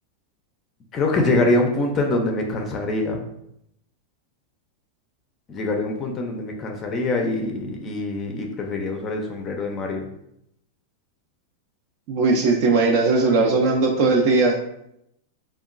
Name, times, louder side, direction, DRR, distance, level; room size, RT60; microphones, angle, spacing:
voice 1, 0.9-3.2 5.5-10.1, left 2 dB, 25° left, 2 dB, 0.4 m, -24 dB
voice 2, 12.1-14.6, right 3 dB, 50° right, 1 dB, 0.4 m, -18 dB
2.8 x 2.2 x 2.4 m, 0.77 s
supercardioid pair, 140°, 0 cm